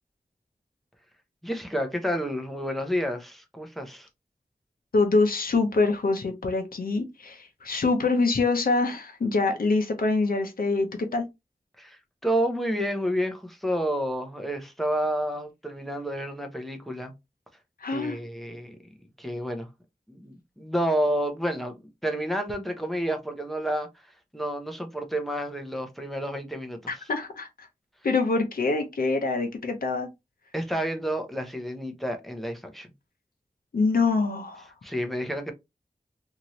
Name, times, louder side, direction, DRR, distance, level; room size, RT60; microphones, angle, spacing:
voice 1, 1.4-4.1 11.8-17.1 17.9-18.8 19.2-19.7 20.1-23.9 24.3-26.9 30.5-32.9 34.8-35.5, equal, ahead, 0.7 m, -30 dB
voice 2, 4.9-11.2 17.8-18.2 26.9-27.7 28.0-30.1 33.7-34.7, left 3 dB, 75° left, 0.7 m, -25 dB
2.9 x 2.6 x 3.0 m
wide cardioid pair, 80°, 15 cm